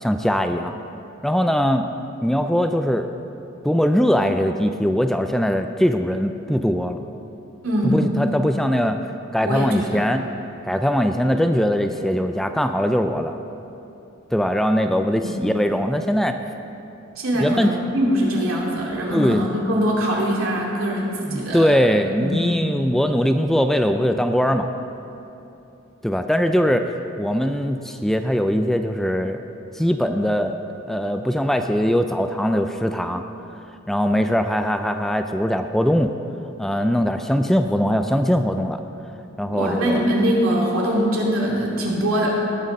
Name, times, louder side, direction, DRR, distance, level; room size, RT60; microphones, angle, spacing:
voice 1, 0.0-0.8 1.2-1.9 2.2-3.1 3.6-7.0 7.8-9.0 9.3-10.2 10.6-13.3 14.3-16.4 17.4-17.7 19.1-19.5 21.3-24.7 26.0-26.9 27.2-29.4 29.7-30.6 30.9-33.2 33.9-36.1 36.6-38.8 39.4-40.0, equal, ahead, 6 dB, 0.3 m, -21 dB
voice 2, 7.6-8.1 9.4-10.1 15.2-15.4 17.2-21.6 22.2-22.6 39.5-42.3, equal, 80° right, -3 dB, 2.6 m, -22 dB
18.5 x 6.6 x 5.3 m, 2.8 s
head